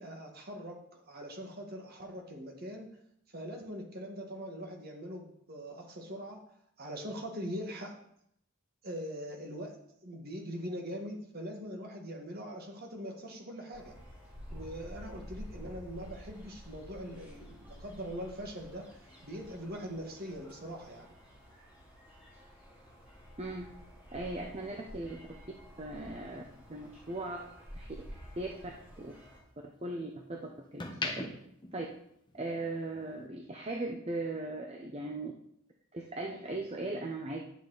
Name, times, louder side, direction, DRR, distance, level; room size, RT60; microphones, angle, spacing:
voice 1, 0.0-2.9 3.3-6.4 6.8-7.9 8.8-13.9 14.5-21.2, equal, 45° right, 1 dB, 1.7 m, -42 dB
sound 1, 13.7-29.4, equal, 5° right, 4.4 m, -50 dB
voice 2, 23.4-23.7 24.1-25.2 25.8-26.4 26.7-27.5 27.7-28.1 28.4-28.6 29.0-29.1 29.8-31.3 31.7-31.9 32.3-35.3 35.9-37.4, right 2 dB, 30° right, 1 dB, 0.7 m, -38 dB
sound 2, 26.0-28.3 28.7-30.1 30.6-32.7 33.0-33.3, left 3 dB, 20° left, 1.0 m, -42 dB
10.5 x 7.0 x 4.0 m, 0.73 s
head